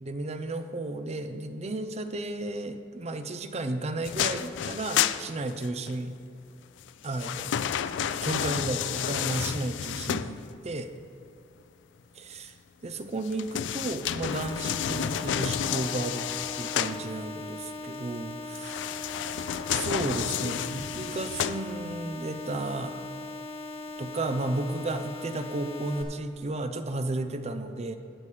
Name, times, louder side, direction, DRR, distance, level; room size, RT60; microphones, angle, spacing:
voice 1, 0.0-6.2 7.0-7.5 8.2-10.9 12.3-12.5 12.8-16.3 16.6-18.8 19.7-23.0 24.0-28.0, right 2 dB, 35° right, 9 dB, 0.6 m, -33 dB
sound 1, 4.0-5.9 6.8-10.7 13.2-17.0 18.5-22.0 22.6-22.7, left 9 dB, 75° left, 0.3 m, -31 dB
sound 2, 14.3-26.0, left 2 dB, 30° left, 1.0 m, -40 dB
17.5 x 6.9 x 3.3 m, 2.5 s
head